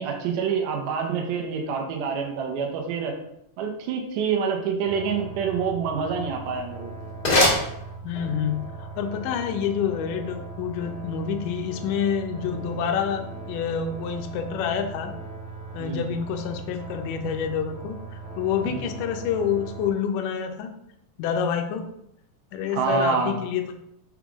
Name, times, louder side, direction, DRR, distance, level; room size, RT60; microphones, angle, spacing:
voice 1, 0.0-3.2 3.6-6.9 15.8-16.0 18.6-18.8 22.7-23.4, right 6 dB, 70° right, 2 dB, 2.3 m, -27 dB
sound 1, 4.8-19.9, right 3 dB, 5° right, 0.6 m, -39 dB
sound 2, 6.3-8.4, left 1 dB, 35° left, 1.9 m, -25 dB
voice 2, 8.0-15.1 15.7-20.7 21.2-21.9 22.5-23.6, left 7 dB, 75° left, 5 dB, 2.1 m, -28 dB
6.1 x 5.6 x 3.6 m, 0.77 s
omnidirectional pair, 4.3 m